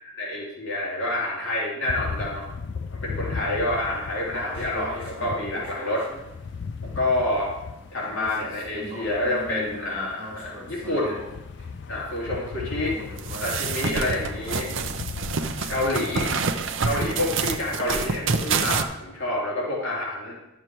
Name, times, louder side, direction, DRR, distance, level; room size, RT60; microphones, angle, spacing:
voice 1, 0.2-2.5 2.9-6.1 6.9-7.5 7.9-11.2 11.9-13.0 13.4-14.7 15.7-16.3 16.8-20.4, left 1 dB, 75° left, -5 dB, 3.1 m, -28 dB
sound 1, 1.9-16.5, left 5 dB, 55° left, 0.4 m, -37 dB
sound 2, 3.7-14.5, right 1 dB, 25° right, 3.3 m, -42 dB
sound 3, 13.2-18.8, right 5 dB, 70° right, 0.6 m, -27 dB
11.5 x 6.8 x 4.6 m, 0.93 s
head